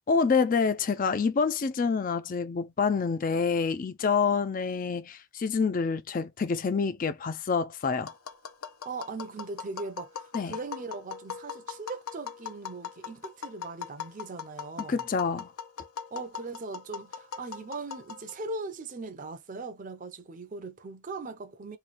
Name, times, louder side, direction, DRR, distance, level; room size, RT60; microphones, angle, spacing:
voice 1, 0.1-8.1 10.3-10.6 14.9-15.5, left 5 dB, 40° left, 0.4 m, -27 dB
Tap, 8.1-18.5, left 7 dB, 85° left, 0.6 m, -41 dB
voice 2, 8.8-15.0 16.1-21.8, right 3 dB, 40° right, 0.6 m, -39 dB
3.1 x 2.2 x 4.1 m
head